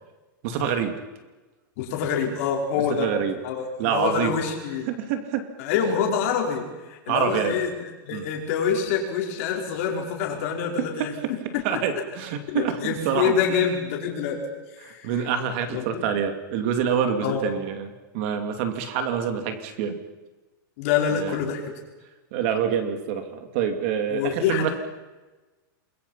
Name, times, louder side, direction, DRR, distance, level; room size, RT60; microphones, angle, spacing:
voice 1, 0.4-0.9 3.0-3.3 3.8-4.4 4.9-5.5 7.1-7.6 8.1-8.2 10.8-11.1 11.6-13.3 14.8-17.9 18.1-20.0 21.1-21.4 22.3-24.7, right 8 dB, 35° right, 8 dB, 2.6 m, -26 dB
voice 2, 1.8-3.1 3.4-4.9 5.6-11.1 11.5-11.6 12.5-14.4 14.8-15.1 15.7-16.0 17.2-17.5 20.8-21.6 24.1-24.7, left 7 dB, 40° left, 1 dB, 4.9 m, -26 dB
28.5 x 22.0 x 5.7 m, 1.2 s
supercardioid pair, 175°, 11 cm